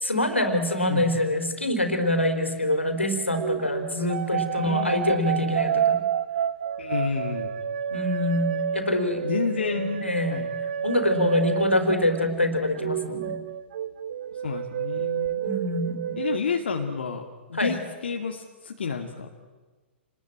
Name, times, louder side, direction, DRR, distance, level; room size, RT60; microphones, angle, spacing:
voice 1, 0.0-6.0 7.9-9.3 9.7-13.3 15.4-16.2 17.5-17.8, left 1 dB, 85° left, 7 dB, 4.1 m, -25 dB
sound 1, 3.3-12.5 12.8-16.4, right 9 dB, 55° right, 1.0 m, -29 dB
voice 2, 4.6-5.5 6.8-7.5 9.2-10.5 14.4-15.4 16.2-19.3, left 5 dB, 65° left, 3 dB, 2.3 m, -30 dB
29.0 x 21.0 x 8.9 m, 1.3 s
figure-of-eight pair, 110°, 6 cm